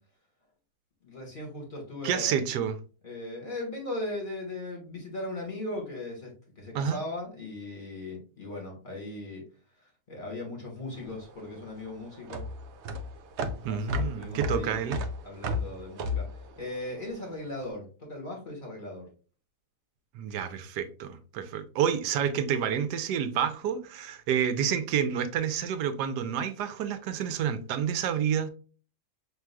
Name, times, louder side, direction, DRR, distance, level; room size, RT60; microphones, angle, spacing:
voice 1, 1.0-2.4 3.0-9.4 9.8-12.4 13.6-14.9 15.2-19.1, left 1 dB, 30° left, 1.7 m, -38 dB
voice 2, 2.0-2.8 6.7-7.0 13.6-15.0 20.1-28.5, right 8 dB, 90° right, 1.2 m, -29 dB
sound 1, 11.0-17.5, left 1 dB, 75° right, 0.6 m, -34 dB
6.0 x 3.1 x 2.2 m
omnidirectional pair, 1.7 m